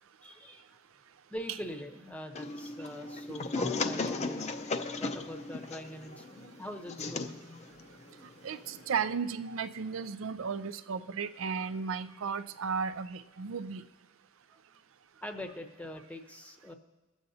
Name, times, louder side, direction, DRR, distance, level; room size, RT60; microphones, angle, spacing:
voice 1, 0.2-0.6 1.3-4.5 5.0-7.4 15.2-16.7, equal, 5° left, 5 dB, 0.8 m, -43 dB
sound 1, 2.3-9.0, left 3 dB, 35° left, 0.5 m, -36 dB
voice 2, 8.4-13.8, right 6 dB, 75° right, 12 dB, 0.5 m, -34 dB
23.5 x 7.9 x 2.8 m, 1.2 s
head